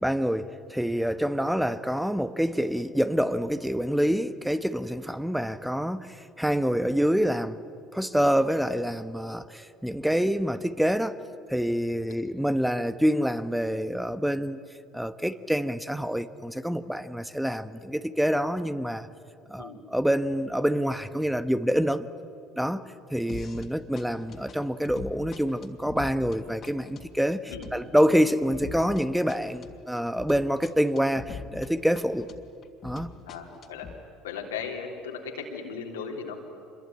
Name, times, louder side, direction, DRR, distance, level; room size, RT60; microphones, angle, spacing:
voice 1, 0.0-7.6 7.9-11.2 11.5-14.6 14.9-19.1 19.5-22.1 22.6-22.8 23.1-32.3 32.8-33.1, equal, 5° right, 12 dB, 1.0 m, -26 dB
sound 1, 23.3-23.7 24.0-31.7 32.0-34.0, left 5 dB, 45° left, 2.9 m, -43 dB
voice 2, 33.3-33.9 34.2-36.3, left 6 dB, 85° left, 1 dB, 3.4 m, -37 dB
26.0 x 22.0 x 9.9 m, 2.5 s
hypercardioid pair, 70°, 0 cm